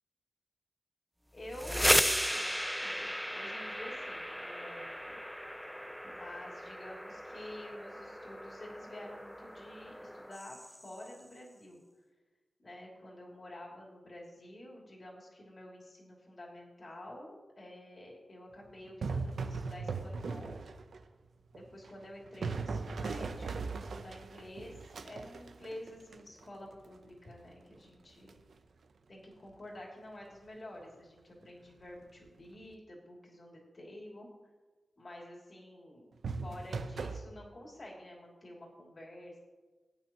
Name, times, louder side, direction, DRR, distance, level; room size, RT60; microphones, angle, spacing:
voice 1, 1.3-5.3 6.0-11.8 12.6-20.6 21.5-24.7 25.0-28.4 29.1-34.5 35.0-36.1 36.4-39.4, left 1 dB, 40° left, -2 dB, 2.9 m, -49 dB
sound 1, 1.4-11.1, equal, ahead, 0.4 m, -35 dB
sound 2, 18.9-21.0 21.5-26.6 28.3-28.5 36.2-37.2, right 4 dB, 75° right, 0.7 m, -38 dB
16.5 x 9.0 x 3.0 m, 1.3 s
wide cardioid pair, 115°, 0 cm